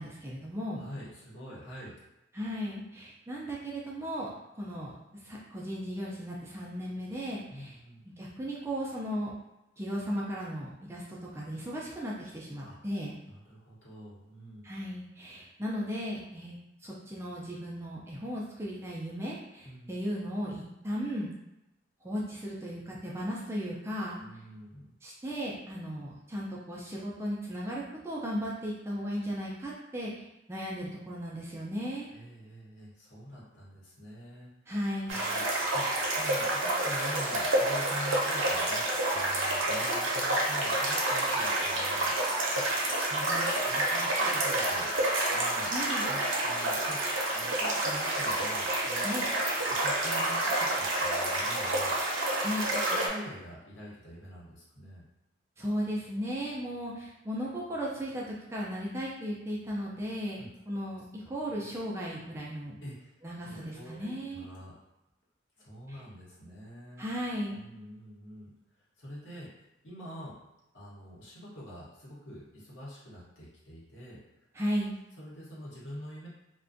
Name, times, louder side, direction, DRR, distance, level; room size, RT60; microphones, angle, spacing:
voice 1, 0.0-0.8 2.3-4.3 4.6-4.9 5.2-7.8 8.2-9.3 9.8-13.2 14.6-16.6 16.8-21.3 22.0-24.2 25.0-32.1 34.7-35.2 45.7-46.0 49.0-49.2 52.4-52.7 55.6-60.4 60.7-62.8 63.2-64.5 65.9-66.0 67.0-67.6 74.5-74.9, equal, 15° right, -4 dB, 0.3 m, -36 dB
voice 2, 0.8-1.9 7.5-8.0 12.7-12.8 13.3-14.7 19.6-19.9 24.2-24.9 32.1-34.5 35.1-38.8 39.1-42.1 42.9-45.7 46.0-47.0 47.3-49.0 49.8-51.9 52.7-55.0 60.4-60.5 62.8-63.1 63.5-64.7 65.6-67.0 67.5-68.5 69.0-69.5 69.8-70.3 70.7-74.2 75.2-76.3, equal, 75° left, -6 dB, 0.9 m, -45 dB
sound 1, 35.1-53.1, right 1 dB, 85° right, 0.6 m, -29 dB
2.4 x 2.1 x 2.5 m, 0.94 s
head